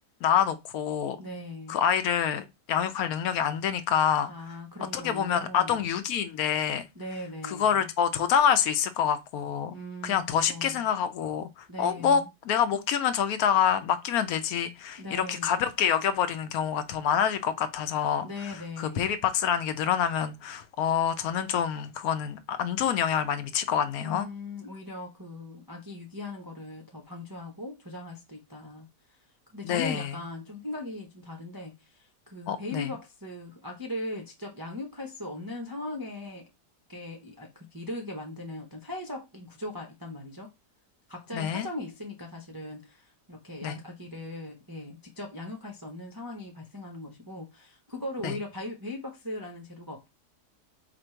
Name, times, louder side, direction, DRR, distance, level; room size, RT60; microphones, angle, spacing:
voice 1, 0.2-1.2 1.7-4.6 4.9-6.8 7.4-9.8 10.0-24.3 29.6-30.1 32.5-32.9 41.3-41.7 43.6-43.8 48.2-48.4, left 8 dB, 70° left, 1.0 m, -27 dB
voice 2, 1.2-1.8 4.2-5.8 6.9-7.9 9.7-10.8 11.7-12.3 15.0-15.7 18.2-19.2 24.0-28.9 29.5-36.5 36.9-40.5 41.1-50.1, left 2 dB, 30° right, 0.4 m, -39 dB
4.3 x 2.6 x 4.3 m
omnidirectional pair, 1.7 m